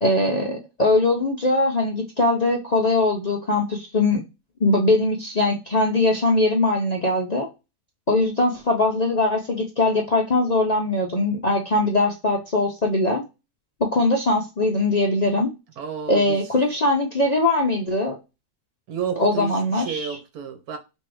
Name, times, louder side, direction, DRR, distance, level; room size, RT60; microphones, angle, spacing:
voice 1, 0.0-4.2 4.6-7.5 8.1-13.2 13.9-15.5 16.1-18.2 19.2-20.2, left 2 dB, 45° left, 0.5 m, -21 dB
voice 2, 15.8-16.4 18.9-20.8, right 7 dB, 85° right, 1.4 m, -31 dB
3.6 x 2.6 x 4.7 m
omnidirectional pair, 1.6 m